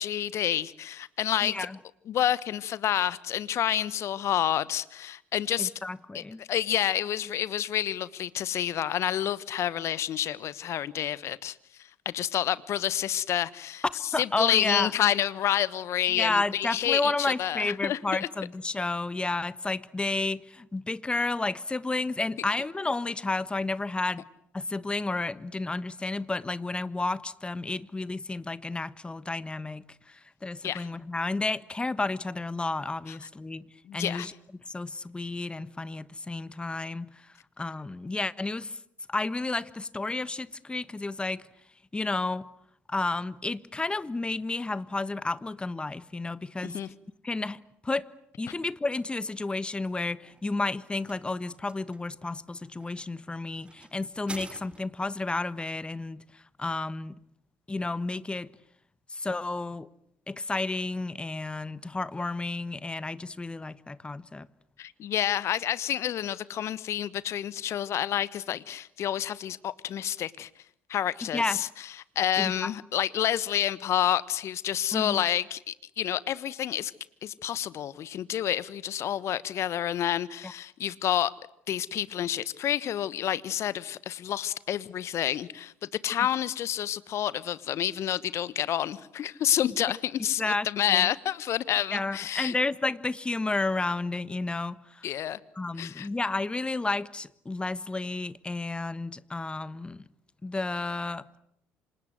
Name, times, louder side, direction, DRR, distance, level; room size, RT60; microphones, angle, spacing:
voice 1, 0.0-1.6 2.1-5.7 6.1-11.6 12.0-13.8 14.2-18.3 30.6-30.9 33.8-34.3 46.6-46.9 64.8-70.5 70.9-71.7 72.1-76.9 77.2-81.3 81.7-92.5 95.0-95.4 95.8-96.1, left 11 dB, 50° left, 1.3 m, -29 dB
voice 2, 1.4-1.8 5.6-6.4 14.1-14.9 16.1-24.2 24.5-33.7 33.9-34.3 34.7-37.1 37.6-38.8 39.1-41.4 41.9-42.4 42.9-46.8 47.2-48.1 48.4-56.2 56.6-57.1 57.7-58.5 59.1-59.9 60.3-64.5 71.2-71.6 72.4-72.7 74.9-75.2 80.4-80.5 90.4-91.1 91.9-95.1 95.5-100.0 100.4-101.4, left 3 dB, 15° left, 1.3 m, -31 dB
sound 1, 50.0-55.1, right 2 dB, 20° right, 2.8 m, -48 dB
28.5 x 26.5 x 7.9 m
hypercardioid pair, 55°, 6 cm